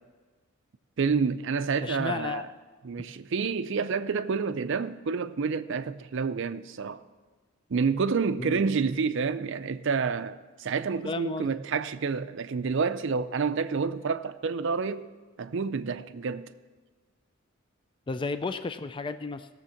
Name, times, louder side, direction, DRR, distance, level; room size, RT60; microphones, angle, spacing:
voice 1, 1.0-2.5 2.8-7.0 7.7-15.1 15.4-16.5, right 5 dB, 60° right, 0.5 m, -29 dB
voice 2, 1.8-2.4 8.4-8.7 11.0-11.5 18.1-19.5, left 3 dB, 20° left, 0.3 m, -33 dB
16.5 x 7.0 x 5.8 m
head